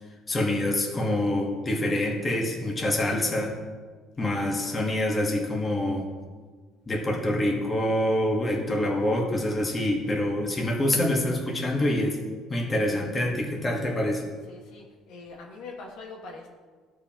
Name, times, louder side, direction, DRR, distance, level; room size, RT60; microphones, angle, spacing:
voice 1, 0.3-3.5 4.2-6.1 6.9-12.2 12.5-14.2, left 1 dB, 20° left, -1 dB, 1.4 m, -26 dB
voice 2, 4.4-4.8 14.4-16.5, left 3 dB, 75° left, -1 dB, 1.5 m, -43 dB
14.5 x 4.8 x 2.9 m, 1.5 s
cardioid pair, 130°, 0 cm